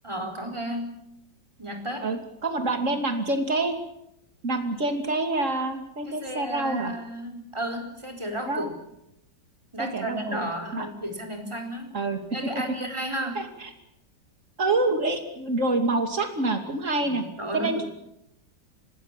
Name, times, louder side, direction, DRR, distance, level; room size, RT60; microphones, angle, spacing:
voice 1, 0.0-1.0 1.6-2.2 6.1-8.7 9.7-11.9 12.3-13.4 17.0-17.9, right 1 dB, 15° right, 2 dB, 4.3 m, -33 dB
voice 2, 2.0-3.8 4.4-6.9 8.5-8.7 9.8-10.9 11.9-12.2 13.3-13.7 14.6-17.2 17.5-17.8, right 2 dB, 45° right, 5 dB, 3.1 m, -27 dB
26.0 x 19.0 x 7.5 m, 0.83 s
omnidirectional pair, 1.9 m